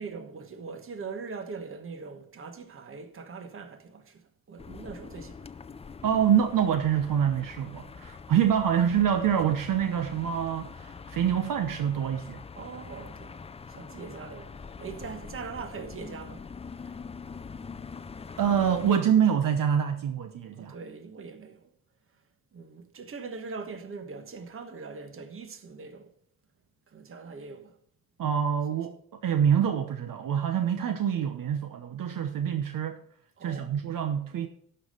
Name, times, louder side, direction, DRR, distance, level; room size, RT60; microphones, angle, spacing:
voice 1, 0.0-5.5 12.5-13.4 13.7-16.5 20.5-21.7 22.5-26.1 26.9-27.8 28.7-28.8 30.8-31.0 33.4-33.8, right 5 dB, 35° right, 1.3 m, -41 dB
sound 1, 4.6-18.9, left 5 dB, 15° left, 0.4 m, -44 dB
voice 2, 6.0-12.4 18.4-20.7 28.2-29.0 29.2-33.0 33.4-34.5, right 8 dB, 60° right, 1.0 m, -26 dB
12.0 x 5.6 x 6.5 m
cardioid pair, 135°, 36 cm